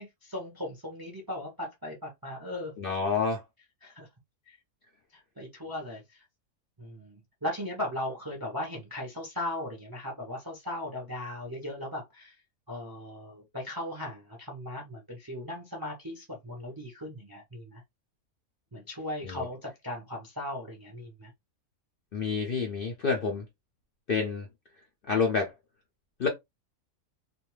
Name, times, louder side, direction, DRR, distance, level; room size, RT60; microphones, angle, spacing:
voice 1, 0.0-2.7 3.8-4.1 4.5-4.6 5.1-6.2 6.8-12.3 12.7-17.8 18.7-21.3, left 1 dB, 25° right, 0.4 m, -38 dB
voice 2, 2.8-3.4 19.2-19.4 22.1-23.4 24.1-24.5 25.1-25.5 26.2-26.3, left 5 dB, 55° left, 0.6 m, -28 dB
2.6 x 2.2 x 3.1 m
omnidirectional pair, 1.5 m